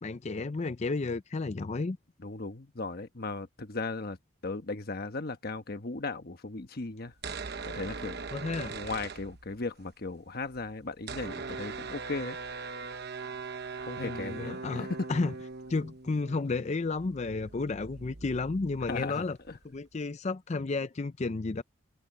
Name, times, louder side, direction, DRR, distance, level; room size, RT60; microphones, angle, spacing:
voice 1, 0.0-2.0 8.3-8.8 14.0-15.3 15.7-19.4 19.6-21.6, left 3 dB, 35° left, 0.5 m, -32 dB
voice 2, 2.2-4.2 4.4-7.1 7.6-8.2 8.7-12.4 13.8-15.1 18.8-19.6, left 3 dB, 50° left, 1.2 m, -37 dB
sound 1, 7.1-9.8 10.1-10.2 10.3-19.8, right 4 dB, 55° right, 1.0 m, -41 dB
head